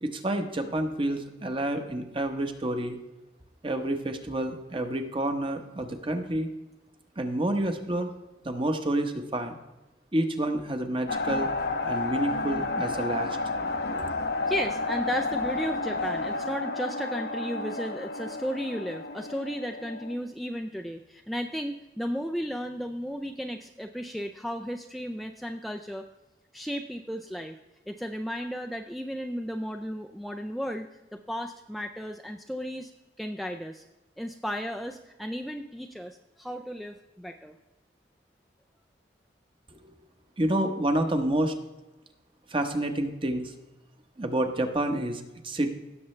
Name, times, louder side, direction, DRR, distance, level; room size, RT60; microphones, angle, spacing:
voice 1, 0.0-3.0 3.6-6.5 7.2-8.1 8.4-9.6 10.1-11.5 11.9-13.4 13.9-14.1 39.7-39.9 40.4-41.6 42.5-43.5 44.2-45.7, right 1 dB, 30° right, 6 dB, 1.0 m, -29 dB
sound 1, 11.1-20.2, left 3 dB, 65° left, 0.8 m, -31 dB
voice 2, 14.5-26.1 26.5-27.6 27.9-30.9 31.1-32.9 33.2-33.8 34.2-37.5, equal, ahead, 3 dB, 0.4 m, -34 dB
17.0 x 6.9 x 3.2 m, 1.0 s
head